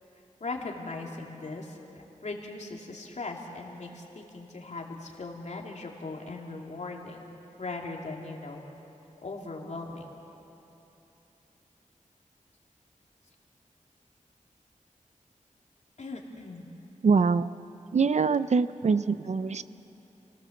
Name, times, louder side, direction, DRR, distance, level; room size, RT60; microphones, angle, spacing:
voice 1, 0.4-8.6 9.2-10.1 16.0-16.7, left 3 dB, 60° left, 0 dB, 2.8 m, -39 dB
voice 2, 17.0-17.5 17.9-19.6, right 5 dB, 55° right, 13 dB, 0.5 m, -24 dB
29.5 x 17.5 x 7.2 m, 3.0 s
wide cardioid pair, 120°, 14 cm